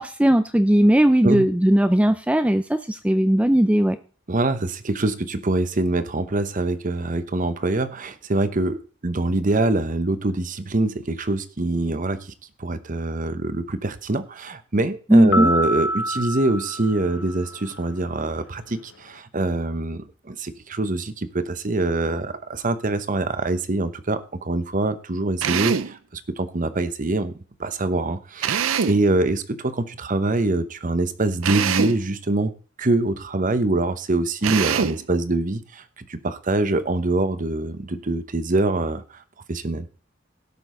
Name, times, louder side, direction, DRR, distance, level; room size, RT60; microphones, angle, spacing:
voice 1, 0.0-4.0 15.1-15.5, right 1 dB, 5° right, 0.4 m, -18 dB
voice 2, 4.3-12.3 12.6-27.3 27.6-32.5 32.8-35.8 36.1-39.2 39.5-39.9, right 2 dB, 40° right, 0.9 m, -24 dB
sound 1, 15.3-17.8, equal, 75° left, 0.7 m, -27 dB
Drill, 25.4-26.0 28.4-29.1 31.4-32.0 34.4-35.0, right 7 dB, 90° right, 0.5 m, -24 dB
17.5 x 6.2 x 3.8 m
head